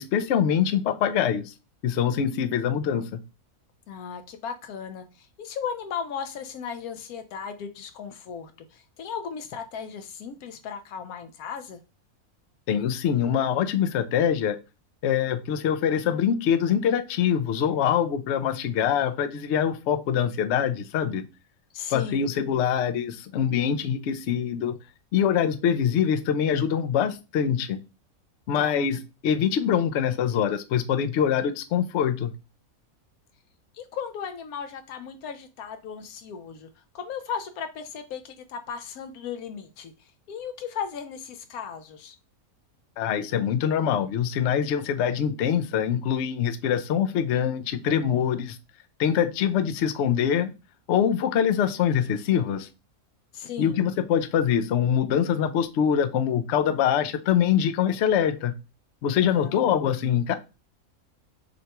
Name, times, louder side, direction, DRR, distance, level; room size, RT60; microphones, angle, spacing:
voice 1, 0.0-1.5 1.8-3.2 12.7-14.6 15.0-21.2 21.9-24.8 25.1-27.8 28.5-32.3 43.0-48.6 49.0-50.5 50.9-52.7 53.6-58.5 59.0-60.3, left 8 dB, 65° left, 0.7 m, -24 dB
voice 2, 3.9-11.8 21.7-22.3 28.5-28.9 33.7-36.7 36.9-39.9 40.3-42.1 53.3-53.8 59.3-59.7, left 7 dB, 85° left, 1.2 m, -36 dB
6.5 x 2.3 x 2.9 m
omnidirectional pair, 1.5 m